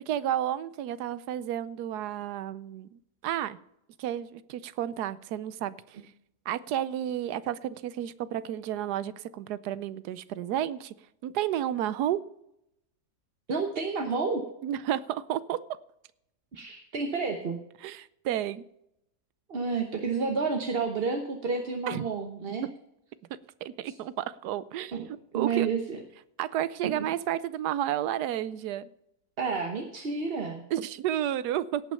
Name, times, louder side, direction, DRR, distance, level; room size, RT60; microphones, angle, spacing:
voice 1, 0.1-3.6 4.0-6.0 6.5-10.9 11.2-12.2 14.6-15.6 17.8-18.6 21.9-22.1 23.6-25.0 25.3-25.7 26.4-28.9 30.7-31.8, right 11 dB, 85° right, 16 dB, 1.2 m, -31 dB
voice 2, 13.5-14.4 16.5-17.6 19.5-22.7 23.9-24.0 24.9-25.1 25.3-26.0 26.8-26.9 29.4-30.6, right 4 dB, 40° right, 3 dB, 1.1 m, -30 dB
17.5 x 6.0 x 5.6 m, 0.80 s
omnidirectional pair, 1.7 m